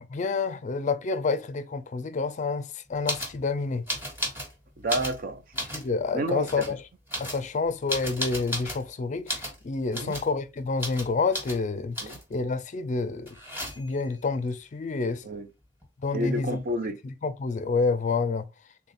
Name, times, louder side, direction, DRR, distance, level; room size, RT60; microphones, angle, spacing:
voice 1, 0.0-3.8 5.7-6.8 7.2-13.4 13.8-15.3 16.0-16.6 17.0-18.5, left 4 dB, 40° left, 0.4 m, -28 dB
sound 1, 3.1-3.4 3.9-4.5 4.8-5.9 6.4-6.7 7.1-8.9 9.3-9.6 9.9-10.3 10.8-11.1 11.3-11.6 12.0-12.3 13.3-14.0 15.8-15.9 16.1-16.7, equal, 10° right, 1.4 m, -34 dB
voice 2, 4.8-5.4 6.1-6.6 9.9-10.1 12.0-12.2 15.2-15.5 16.1-17.0, right 1 dB, 50° right, 0.5 m, -30 dB
3.6 x 2.4 x 4.1 m
head